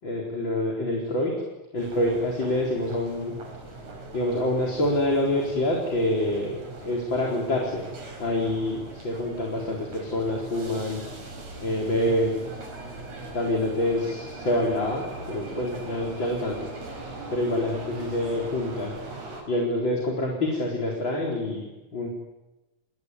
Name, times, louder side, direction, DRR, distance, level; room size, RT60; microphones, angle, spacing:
voice 1, 0.0-1.4 1.7-3.3 4.1-7.9 8.2-11.0 11.6-12.4 13.3-22.1, left 1 dB, 40° left, -1 dB, 4.8 m, -27 dB
sound 1, 1.8-19.4, right 2 dB, 90° right, 7.4 m, -40 dB
29.5 x 21.5 x 9.5 m, 1.0 s
omnidirectional pair, 3.3 m